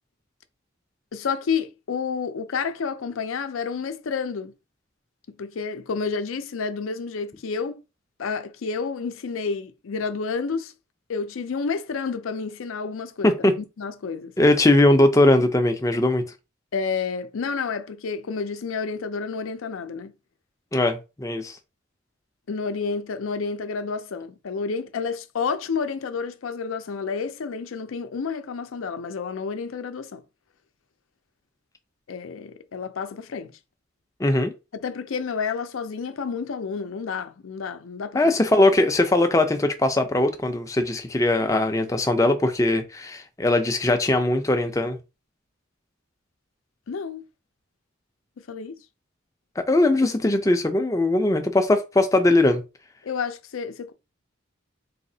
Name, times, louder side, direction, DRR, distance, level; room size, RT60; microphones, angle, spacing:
voice 1, 1.1-4.5 5.3-7.8 8.2-10.7 11.1-14.3 16.7-20.1 22.5-30.2 32.1-33.5 34.7-38.2 46.9-47.2 48.5-48.8 53.0-53.9, left 5 dB, 85° left, 0.5 m, -30 dB
voice 2, 14.4-16.2 20.7-21.6 34.2-34.5 38.1-45.0 49.6-52.6, left 2 dB, 15° left, 0.4 m, -20 dB
4.1 x 2.8 x 2.7 m
head